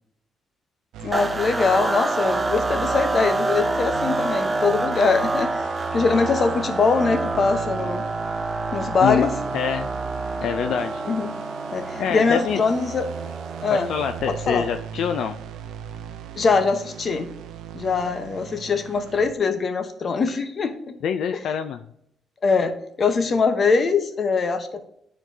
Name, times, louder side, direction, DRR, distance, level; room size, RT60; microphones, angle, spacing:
sound 1, 0.9-19.3, right 9 dB, 85° right, 0.5 m, -37 dB
voice 1, 1.0-5.6 5.9-8.0 8.7-9.3 11.1-11.3 11.7-13.1 13.6-13.9 14.5-14.7 16.3-17.3 17.7-21.0 22.4-24.8, left 4 dB, 45° left, 8 dB, 0.9 m, -22 dB
sound 2, 1.1-14.5, right 2 dB, 20° right, 0.5 m, -28 dB
voice 2, 9.5-9.9 10.4-11.0 12.0-12.6 13.7-15.4 21.0-21.8, left 7 dB, 75° left, 7 dB, 0.4 m, -25 dB
9.8 x 4.5 x 2.7 m, 0.72 s
cardioid pair, 90°, 0 cm